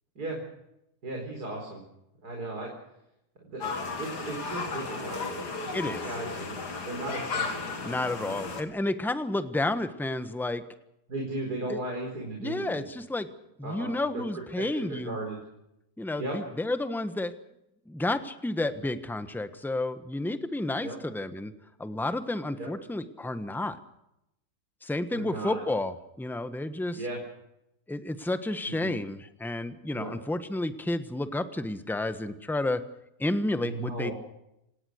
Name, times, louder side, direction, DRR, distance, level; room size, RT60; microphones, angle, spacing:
voice 1, 1.0-1.8 2.2-2.7 3.4-6.5 6.9-7.8 8.1-8.5 11.1-12.8 13.6-13.9 14.6-15.4 16.2-16.3 20.8-21.0 22.6-22.7 25.1-25.6 26.9-27.2 28.8-29.0 29.9-30.1 33.6-34.1, right 2 dB, 70° right, 0 dB, 5.3 m, -36 dB
sound 1, 3.6-8.6, left 4 dB, 85° left, 3.1 m, -34 dB
voice 2, 5.7-6.0 7.8-10.6 11.7-11.8 12.4-13.3 13.6-15.2 16.0-17.3 17.9-21.5 21.8-23.8 24.8-27.0 27.9-32.8 33.2-34.1, left 2 dB, ahead, 10 dB, 1.1 m, -31 dB
28.0 x 18.0 x 6.5 m, 0.82 s
omnidirectional pair, 1.7 m